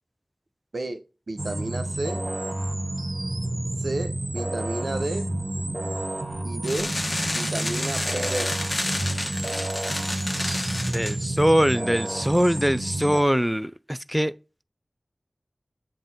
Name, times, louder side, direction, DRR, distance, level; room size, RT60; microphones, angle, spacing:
voice 1, 0.7-2.2 3.8-5.3 6.4-7.0 7.3-8.6, right 2 dB, 80° right, 0.6 m, -32 dB
sound 1, 1.4-13.2, right 1 dB, 55° right, 0.9 m, -30 dB
sound 2, 6.6-11.2, left 1 dB, 35° left, 0.9 m, -30 dB
voice 2, 10.9-14.3, equal, 5° right, 0.3 m, -22 dB
7.6 x 2.6 x 5.6 m
wide cardioid pair, 50°, 0 cm